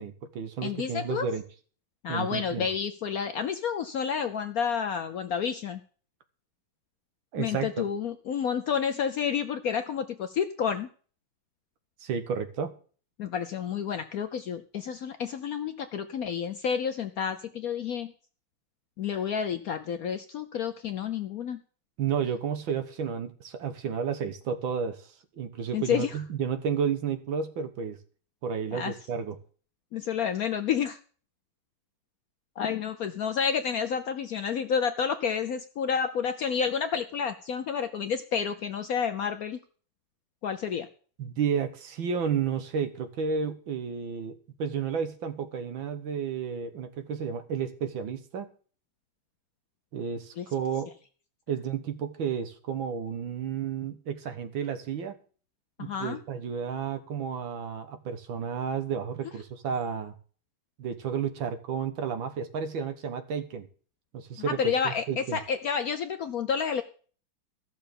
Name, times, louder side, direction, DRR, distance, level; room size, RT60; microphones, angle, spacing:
voice 1, 0.0-1.4 2.1-2.7 7.3-7.8 12.0-12.7 22.0-25.1 25.4-28.0 28.4-29.4 41.2-48.5 49.9-50.9 51.5-55.2 55.8-60.1 60.8-63.7 64.1-65.4, right 7 dB, 80° right, 9 dB, 2.0 m, -32 dB
voice 2, 0.6-1.3 2.0-5.8 7.4-10.9 13.2-18.1 19.0-21.6 25.7-26.1 28.7-28.9 29.9-31.0 32.6-39.6 40.4-40.9 50.4-50.5 55.8-56.2 64.5-66.8, left 7 dB, 65° left, 10 dB, 0.9 m, -30 dB
14.0 x 6.7 x 6.9 m, 0.43 s
omnidirectional pair, 2.1 m